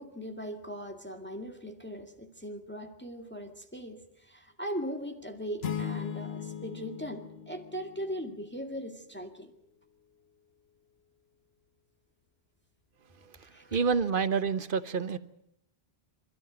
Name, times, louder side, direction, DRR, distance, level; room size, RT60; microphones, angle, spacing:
voice 1, 0.0-9.5 13.4-13.8, equal, 10° left, 2.0 m, -39 dB
sound 1, 5.6-8.4, left 8 dB, 75° left, 1.4 m, -38 dB
voice 2, 13.7-15.2, right 5 dB, 55° right, 1.2 m, -28 dB
27.0 x 14.0 x 9.2 m
omnidirectional pair, 1.1 m